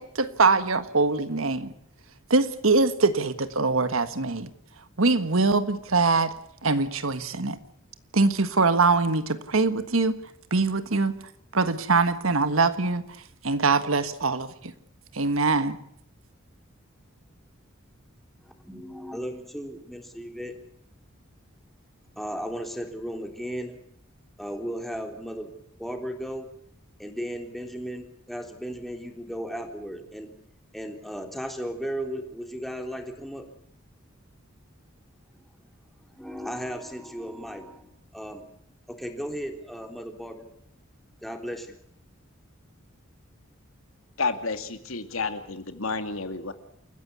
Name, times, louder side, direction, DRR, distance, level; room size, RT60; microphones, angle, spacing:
voice 1, 0.0-1.7 2.3-4.5 5.0-6.3 6.6-7.6 8.1-10.2 10.5-11.2 11.5-13.0 13.4-14.7 15.1-15.8, right 3 dB, 80° right, 1.6 m, -23 dB
voice 2, 18.4-20.5 22.2-23.8 24.4-25.5 25.8-26.5 27.0-30.3 30.7-33.5 36.2-38.5 38.9-40.5 41.2-41.7, equal, ahead, 3.5 m, -35 dB
voice 3, 44.2-46.5, left 4 dB, 80° left, 2.5 m, -30 dB
28.5 x 15.0 x 8.3 m
head